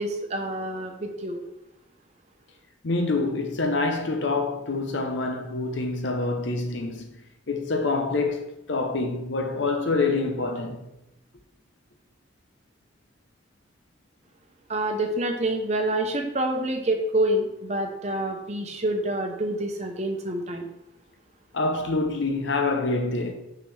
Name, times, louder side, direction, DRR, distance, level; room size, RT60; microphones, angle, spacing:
voice 1, 0.0-1.4 14.7-20.7, right 1 dB, 35° right, 0.9 m, -27 dB
voice 2, 2.8-7.2 7.5-10.9 21.5-23.3, left 3 dB, 75° left, 0.7 m, -26 dB
5.8 x 5.8 x 3.4 m
head